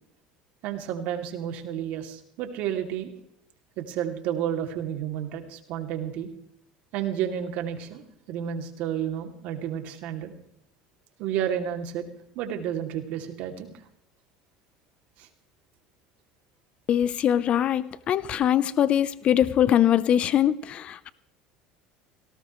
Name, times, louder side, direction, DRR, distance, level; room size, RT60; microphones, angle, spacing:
voice 1, 0.6-3.1 3.8-6.3 6.9-10.3 11.2-12.1 12.3-13.7 15.2-15.3, right 9 dB, 65° right, 4 dB, 2.7 m, -31 dB
voice 2, 16.9-21.1, left 10 dB, 45° left, 17 dB, 0.7 m, -22 dB
18.0 x 18.0 x 3.1 m, 0.72 s
supercardioid pair, 110°, 3 cm